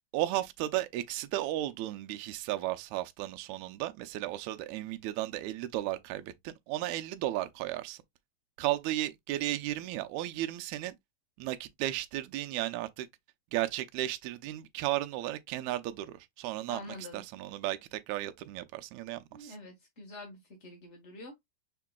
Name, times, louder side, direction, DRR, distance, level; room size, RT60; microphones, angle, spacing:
voice 1, 0.1-8.0 8.6-11.0 11.4-13.1 13.5-19.6, right 14 dB, 80° right, 1.9 m, -34 dB
voice 2, 16.7-17.2 19.3-21.4, left 2 dB, 55° left, 0.8 m, -46 dB
5.9 x 3.7 x 2.3 m
omnidirectional pair, 3.4 m